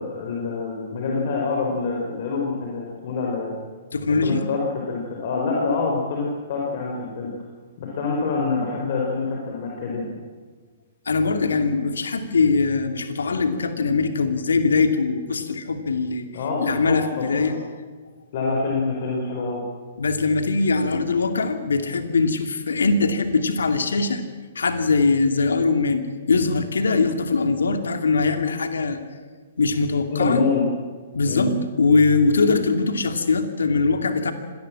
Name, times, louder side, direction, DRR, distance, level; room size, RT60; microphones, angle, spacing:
voice 1, 0.0-3.5 4.2-7.3 7.8-10.1 16.3-17.6 18.3-19.6 30.1-30.6 31.2-31.5, left 4 dB, 50° left, -1 dB, 5.2 m, -26 dB
voice 2, 3.9-4.4 11.1-16.3 16.6-17.5 20.0-24.2 24.5-29.0 29.6-30.4 31.1-31.5 31.8-34.3, left 4 dB, 75° left, 7 dB, 2.6 m, -21 dB
25.5 x 18.5 x 7.7 m, 1.5 s
figure-of-eight pair, 120°, 0 cm